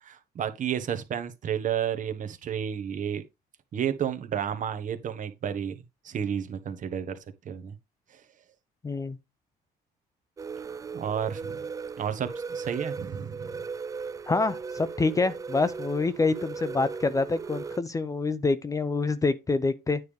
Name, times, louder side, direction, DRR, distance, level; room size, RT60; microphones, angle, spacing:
voice 1, 0.0-3.2 3.7-7.2 7.4-7.7 8.1-8.2 10.9-11.6 12.0-13.6, right 8 dB, 50° right, 1.3 m, -31 dB
voice 2, 8.8-9.2 14.3-20.0, left 3 dB, 20° left, 0.7 m, -26 dB
sound 1, 10.4-17.8, right 5 dB, 20° right, 0.3 m, -37 dB
9.4 x 3.4 x 5.3 m
cardioid pair, 110°, 17 cm